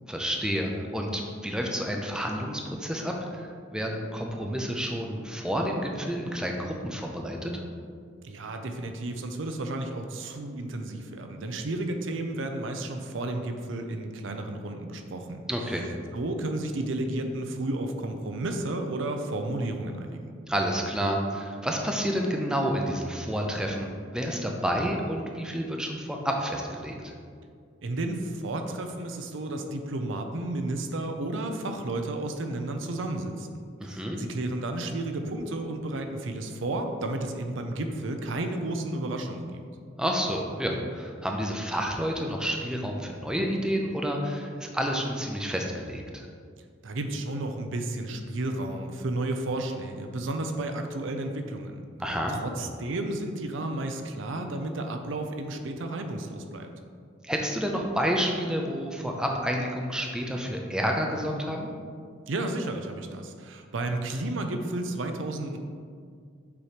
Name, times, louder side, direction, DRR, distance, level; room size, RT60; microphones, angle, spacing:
voice 1, 0.1-7.6 15.5-15.9 20.5-27.1 33.8-34.2 40.0-46.3 52.0-52.3 57.2-61.7, equal, 5° right, 1 dB, 0.5 m, -29 dB
voice 2, 8.2-15.4 16.1-20.3 27.8-39.6 46.8-51.9 52.3-56.7 62.3-65.6, right 2 dB, 70° right, 5 dB, 0.6 m, -32 dB
6.9 x 3.1 x 5.0 m, 2.1 s
head